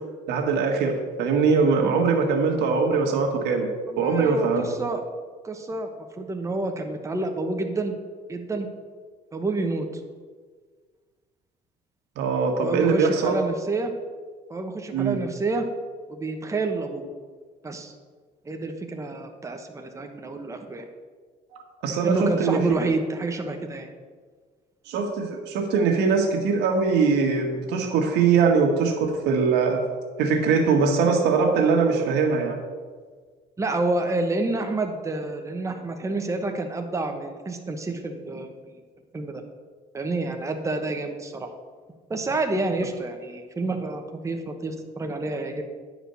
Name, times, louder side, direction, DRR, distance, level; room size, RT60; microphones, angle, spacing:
voice 1, 0.3-3.7 4.0-4.6 12.1-13.3 14.9-15.2 21.5-22.6 24.9-29.8 30.2-32.6, right 5 dB, 85° right, 2 dB, 1.6 m, -22 dB
voice 2, 3.9-5.0 5.4-5.9 6.2-7.9 8.3-8.7 9.3-9.9 12.6-13.9 14.5-15.7 16.1-17.0 17.6-17.9 18.4-20.9 22.0-23.9 33.6-38.7 39.1-39.4 39.9-41.5 42.1-45.6, right 2 dB, 15° right, 4 dB, 1.0 m, -28 dB
9.7 x 5.0 x 6.8 m, 1.5 s
cardioid pair, 110°, 17 cm